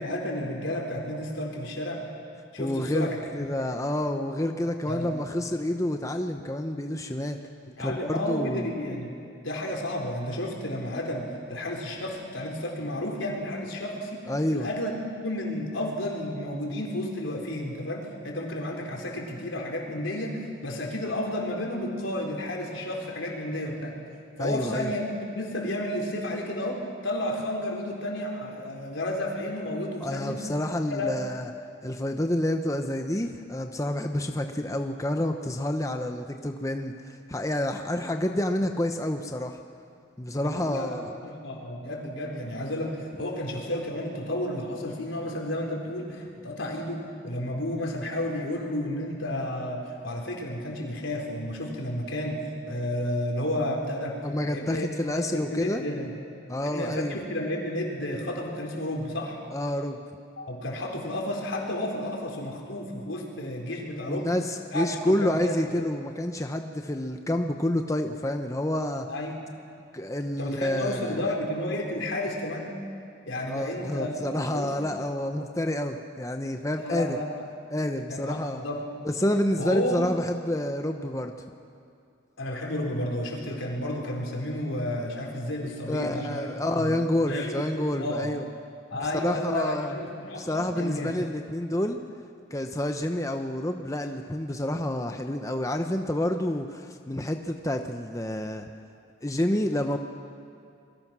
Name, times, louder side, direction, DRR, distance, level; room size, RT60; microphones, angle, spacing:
voice 1, 0.0-2.0 2.5-3.2 3.6-3.7 4.9-5.1 7.8-9.1 9.4-14.2 14.5-14.9 15.2-23.9 24.4-30.4 30.9-31.2 40.3-52.4 52.7-54.2 54.4-56.1 56.6-59.4 60.4-64.3 64.7-65.9 69.1-69.4 70.4-72.8 73.3-74.7 76.7-77.4 78.1-78.8 79.6-80.1 82.4-86.5 86.8-86.9 87.3-87.6 88.0-88.3 88.9-91.1, left 1 dB, 85° left, 0 dB, 4.3 m, -32 dB
voice 2, 2.6-7.4 7.8-8.6 14.3-14.7 24.4-24.9 30.0-31.5 31.8-39.6 40.2-41.1 54.2-55.8 56.5-57.2 59.5-60.0 64.1-69.1 69.9-71.2 73.5-77.2 77.7-78.7 79.0-81.3 85.9-88.4 88.9-90.0 90.4-92.0 92.5-98.7 99.2-100.0, left 1 dB, 15° left, 5 dB, 0.8 m, -28 dB
27.0 x 22.0 x 6.2 m, 2.4 s
head